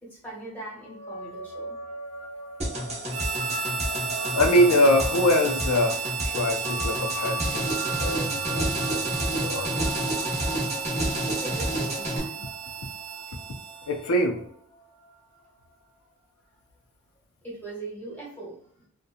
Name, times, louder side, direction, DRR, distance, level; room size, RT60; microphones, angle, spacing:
voice 1, 0.0-1.8 11.2-12.5 17.4-18.9, right 2 dB, 5° left, -5 dB, 1.1 m, -40 dB
sound 1, 0.8-15.5, left 1 dB, 25° left, 0.8 m, -39 dB
sound 2, 2.6-12.2, right 1 dB, 30° right, 0.8 m, -30 dB
Harmonica, 3.1-14.2, right 7 dB, 70° right, 0.4 m, -33 dB
voice 2, 4.3-9.7 13.9-14.4, left 1 dB, 75° left, 4 dB, 0.4 m, -24 dB
2.7 x 2.1 x 2.4 m, 0.64 s
head